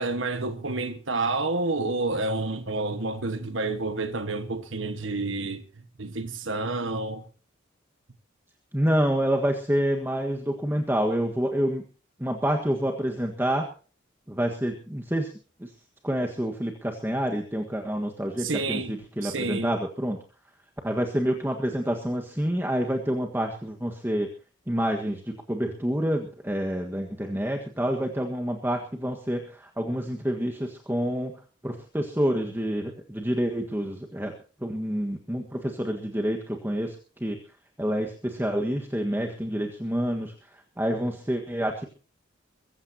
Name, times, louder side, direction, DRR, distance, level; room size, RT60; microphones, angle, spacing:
voice 1, 0.0-5.6 6.0-7.2 18.4-19.7, right 3 dB, 75° right, 1.5 m, -29 dB
voice 2, 8.7-11.8 12.2-13.7 14.3-15.3 15.6-15.7 16.0-20.2 20.8-24.3 24.7-34.3 34.6-37.4 37.8-41.8, equal, 10° right, 1.6 m, -28 dB
23.0 x 15.0 x 2.9 m
head